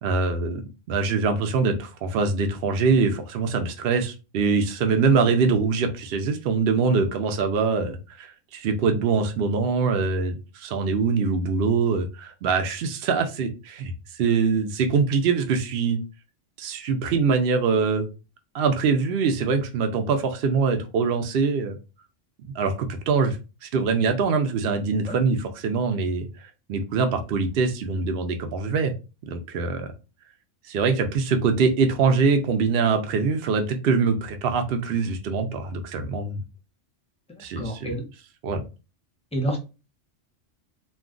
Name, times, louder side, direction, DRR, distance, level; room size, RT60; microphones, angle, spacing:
voice 1, 0.0-16.0 16.6-18.1 18.5-21.8 22.4-23.4 23.6-28.9 29.3-29.9 30.6-36.4 37.4-37.9 38.4-38.6, right 5 dB, 65° right, 6 dB, 0.7 m, -23 dB
voice 2, 37.3-38.0 39.3-39.6, right 1 dB, 5° left, 1 dB, 0.5 m, -29 dB
2.3 x 2.3 x 3.6 m, 0.30 s
omnidirectional pair, 1.2 m